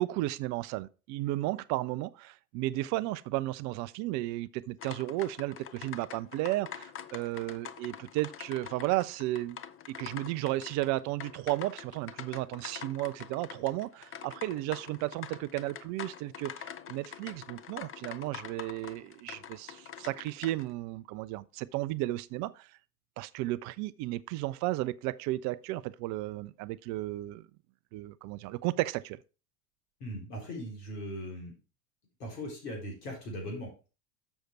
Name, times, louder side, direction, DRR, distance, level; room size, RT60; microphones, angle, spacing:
voice 1, 0.0-9.6 9.9-22.7 23.2-27.4 27.9-29.2, right 17 dB, 40° right, 0.4 m, -34 dB
sound 1, 4.8-20.7, left 9 dB, 25° left, 0.7 m, -45 dB
voice 2, 30.0-31.5 32.2-33.9, equal, 75° left, 4.2 m, -39 dB
7.1 x 6.4 x 4.6 m
hypercardioid pair, 85°, 48 cm